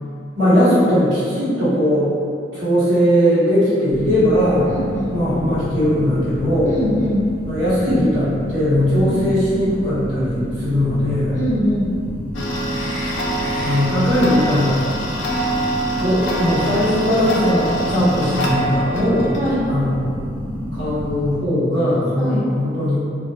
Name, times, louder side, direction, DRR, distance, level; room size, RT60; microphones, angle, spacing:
voice 1, 0.3-2.1 2.5-4.7 5.1-6.8 7.5-11.4 13.6-14.8 16.0-19.3 19.7-20.0 20.7-23.0, equal, 65° right, -16 dB, 1.1 m, -19 dB
sound 1, 3.9-21.4, equal, 10° left, 0.4 m, -29 dB
voice 2, 4.7-5.2 6.6-7.3 9.0-9.2 11.3-11.9 19.3-19.6 22.2-22.4, equal, 45° left, -10 dB, 0.8 m, -23 dB
Tick-tock, 12.3-19.6, right 1 dB, 85° left, 0.4 m, -25 dB
sound 2, 12.7-13.8 16.7-16.8, equal, 45° right, 0.5 m, -35 dB
2.4 x 2.1 x 2.8 m, 2.4 s
head